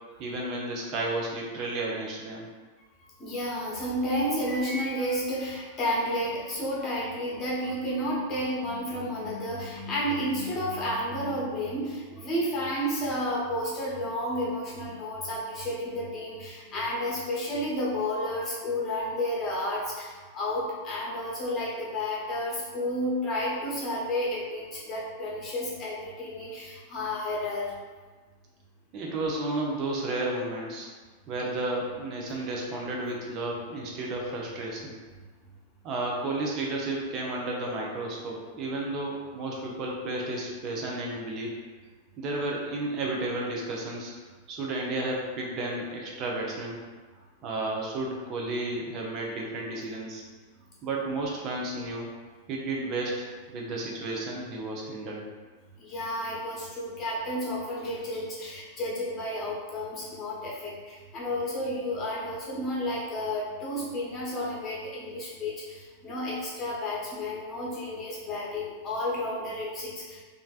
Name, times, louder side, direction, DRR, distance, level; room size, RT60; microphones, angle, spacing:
voice 1, 0.2-2.5 28.9-30.9 31.3-35.0 35.8-41.6 42.2-44.1 44.5-46.8 47.4-50.2 50.8-52.1 52.5-55.2, right 2 dB, 35° right, -2 dB, 0.6 m, -32 dB
voice 2, 3.2-27.7 55.8-70.2, left 1 dB, 25° left, -5 dB, 1.0 m, -31 dB
3.2 x 2.5 x 2.4 m, 1.4 s
figure-of-eight pair, 90°, 0 cm